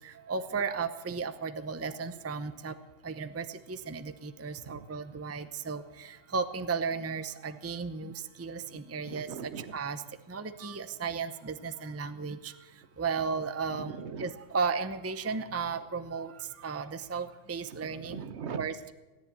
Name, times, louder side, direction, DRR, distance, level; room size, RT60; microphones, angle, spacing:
voice 1, 0.3-2.7 3.0-5.8 6.3-8.1 8.4-9.3 9.7-10.0 10.3-12.5 13.0-13.9 14.2-16.3 16.6-18.2 18.6-18.9, right 5 dB, 15° right, 11 dB, 0.6 m, -34 dB
voice 2, 9.1-9.7 13.7-14.3 17.7-18.7, right 6 dB, 60° right, 12 dB, 1.1 m, -41 dB
17.0 x 10.5 x 8.1 m, 1.2 s
omnidirectional pair, 1.3 m